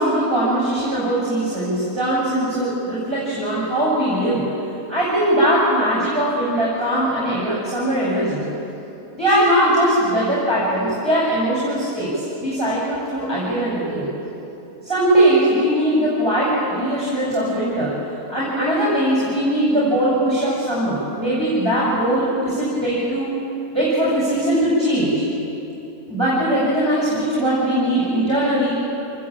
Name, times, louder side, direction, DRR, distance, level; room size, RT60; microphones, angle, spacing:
voice 1, 0.0-4.4 4.9-8.4 9.2-14.1 14.8-17.9 18.3-23.3 23.7-25.2 26.1-28.8, right 1 dB, 15° right, -8 dB, 7.4 m, -20 dB
27.0 x 20.5 x 8.8 m, 2.9 s
omnidirectional pair, 1.7 m